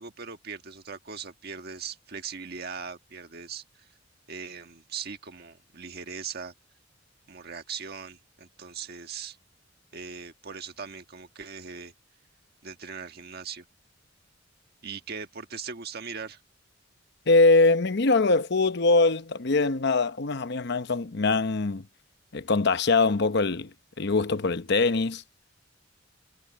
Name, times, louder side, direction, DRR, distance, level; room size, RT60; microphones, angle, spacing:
voice 1, 0.0-3.9 4.3-6.5 7.3-9.4 9.9-11.9 12.6-13.6 14.8-16.4, right 6 dB, 55° right, 1.5 m, -39 dB
voice 2, 17.3-21.8 22.3-23.7 24.0-25.2, left 3 dB, 60° left, 0.9 m, -22 dB
head